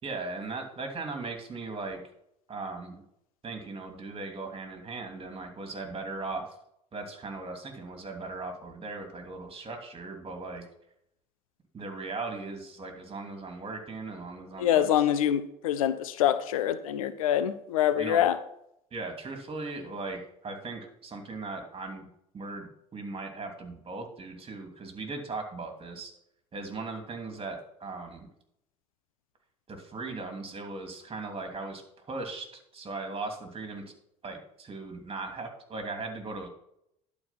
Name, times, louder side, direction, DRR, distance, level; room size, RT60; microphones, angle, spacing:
voice 1, 0.0-2.0 2.5-3.0 3.4-6.4 6.9-10.6 11.7-14.9 18.0-18.2 18.9-22.1 22.3-26.1 26.5-28.3 29.7-32.5 32.7-33.9 34.2-36.5, right 3 dB, 30° right, 4 dB, 2.8 m, -38 dB
voice 2, 14.6-18.4, left 10 dB, 85° left, 13 dB, 0.7 m, -25 dB
11.0 x 4.8 x 5.9 m, 0.75 s
hypercardioid pair, 70°, 17 cm